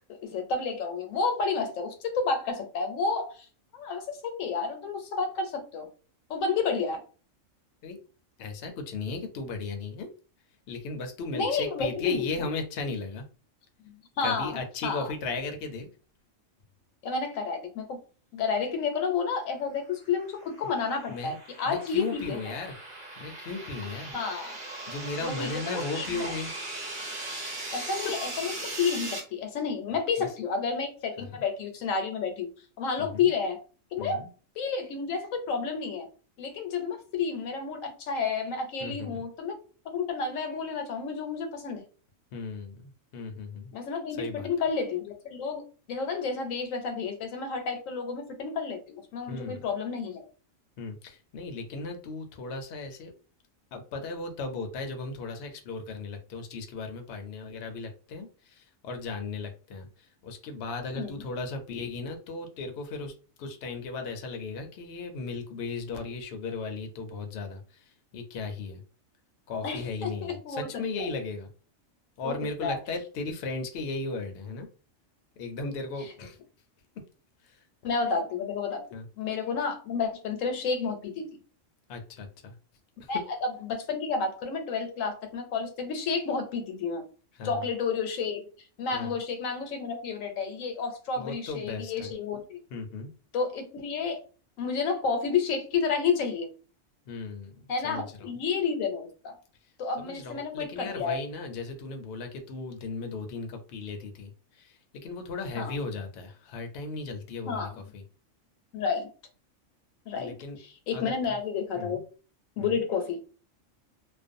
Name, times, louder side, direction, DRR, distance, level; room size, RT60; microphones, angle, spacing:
voice 1, 0.1-3.4 3.7-5.9 6.3-7.0 11.3-12.5 13.8-15.1 17.0-18.0 18.3-22.5 24.1-24.6 25.2-26.3 27.7-28.5 28.8-32.5 32.8-33.6 33.9-34.2 34.6-36.1 36.4-39.6 39.9-41.8 43.7-50.3 60.9-61.2 69.6-70.7 71.0-71.1 72.2-72.3 72.6-72.8 77.8-78.8 79.2-81.3 83.1-87.0 87.4-88.4 88.8-92.6 93.3-94.2 94.6-96.5 97.7-99.3 99.8-101.2 105.6-105.8 107.5-107.7 108.7-109.1 110.1-110.3 110.6-112.0 112.6-113.2, left 5 dB, 80° left, 5 dB, 1.0 m, -30 dB
voice 2, 8.4-10.1 10.7-13.3 14.2-15.9 21.1-21.4 21.7-22.8 23.2-24.1 24.9-26.5 27.7-27.8 30.2-30.3 31.2-31.3 33.0-33.3 34.0-34.3 38.8-39.2 42.3-43.7 44.2-44.5 49.3-49.6 50.8-53.1 53.7-63.1 63.4-67.8 68.1-68.8 69.5-71.5 72.2-74.7 75.4-76.4 77.4-77.6 78.9-79.1 81.9-82.6 83.0-83.1 87.3-87.7 88.9-89.2 91.2-92.1 92.7-93.1 97.1-98.3 100.0-108.0 110.1-110.6 110.9-111.0 111.3-111.4 111.8-112.0 112.6-112.8, left 3 dB, 60° left, 5 dB, 0.7 m, -36 dB
sound 1, 20.2-29.2, right 2 dB, 45° right, 0.9 m, -39 dB
2.4 x 2.2 x 2.5 m, 0.37 s
omnidirectional pair, 1.3 m